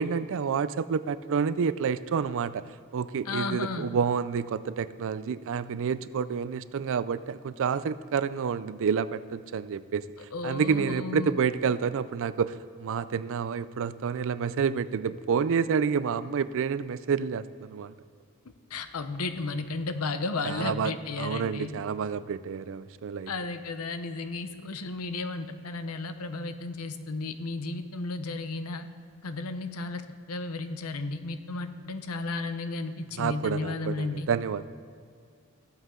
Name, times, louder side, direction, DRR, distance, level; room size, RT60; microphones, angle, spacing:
voice 1, 0.0-2.6 2.9-10.0 10.4-17.9 20.4-20.9 21.2-23.3 33.2-34.7, right 6 dB, 65° right, 15 dB, 0.4 m, -29 dB
voice 2, 3.2-3.9 10.3-11.4 18.7-21.7 23.3-28.9 29.2-30.0 30.3-34.3, left 3 dB, 75° left, 9 dB, 0.8 m, -33 dB
15.0 x 8.0 x 3.8 m, 2.3 s
head